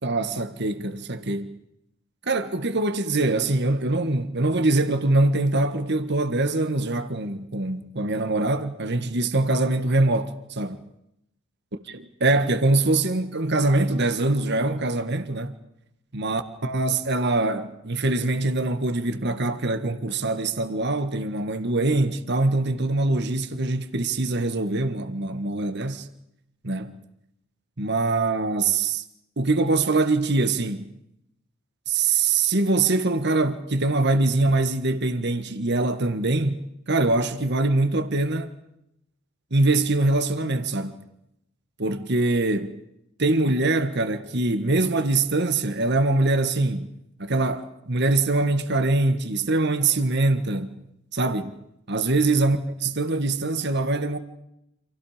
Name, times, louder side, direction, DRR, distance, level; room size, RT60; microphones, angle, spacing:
voice 1, 0.0-1.6 2.3-10.8 11.9-15.5 16.1-26.1 26.6-27.0 27.8-29.0 29.4-30.9 31.9-38.5 39.5-41.0 41.8-42.8 43.2-46.9 47.2-50.8 51.1-51.5 51.9-54.2, right 2 dB, 55° right, 1.8 m, -23 dB
29.5 x 27.5 x 5.1 m
head